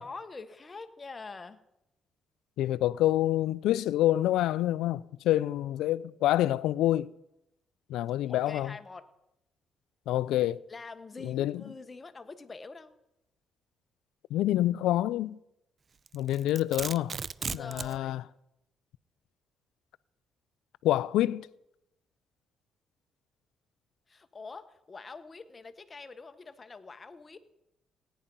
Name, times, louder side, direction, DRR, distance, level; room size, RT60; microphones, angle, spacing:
voice 1, 0.0-1.6 8.3-9.1 10.7-12.9 17.4-18.2 24.1-27.4, left 4 dB, 30° left, 1.2 m, -45 dB
voice 2, 2.6-7.1 7.9-8.7 10.1-10.6 11.2-11.6 14.3-15.4 16.1-17.1 17.5-18.2 20.8-21.5, left 14 dB, 90° left, 0.4 m, -27 dB
Domestic sounds home sounds, 16.1-18.0, right 5 dB, 40° right, 0.4 m, -36 dB
17.0 x 10.0 x 5.4 m
cardioid pair, 90°, 0 cm